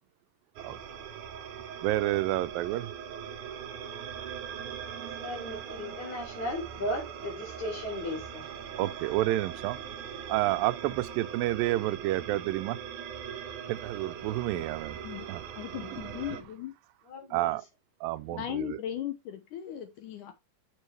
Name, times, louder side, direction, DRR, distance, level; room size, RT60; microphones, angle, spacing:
sound 1, 0.6-16.4, right 8 dB, 70° right, 2.3 m, -41 dB
voice 1, 1.8-2.9 8.8-9.8 10.3-12.8 13.7-15.4 15.9-16.0 17.3-17.6 18.0-18.8, right 16 dB, 85° right, 2.3 m, -30 dB
voice 2, 5.2-8.5 17.1-17.6, left 1 dB, 55° left, 4.8 m, -36 dB
voice 3, 15.6-16.7 18.3-20.3, left 11 dB, 70° left, 2.3 m, -37 dB
7.2 x 7.0 x 3.2 m
omnidirectional pair, 4.0 m